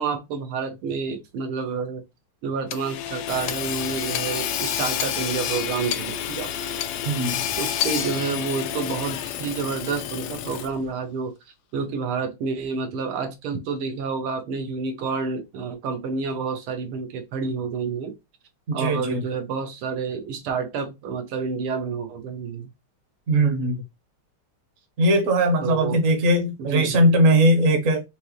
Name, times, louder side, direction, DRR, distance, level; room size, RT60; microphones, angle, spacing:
voice 1, 0.0-2.0 2.4-6.5 7.6-11.3 11.7-18.1 18.7-22.7 25.6-26.0 26.6-27.0, right 5 dB, 85° right, 1.8 m, -29 dB
Hammer / Sawing, 2.7-10.9, left 10 dB, 90° left, 0.9 m, -29 dB
voice 2, 7.0-7.4 18.7-19.2 23.3-23.8 25.0-28.0, right 1 dB, 45° right, 1.2 m, -20 dB
5.2 x 2.7 x 3.1 m
omnidirectional pair, 2.3 m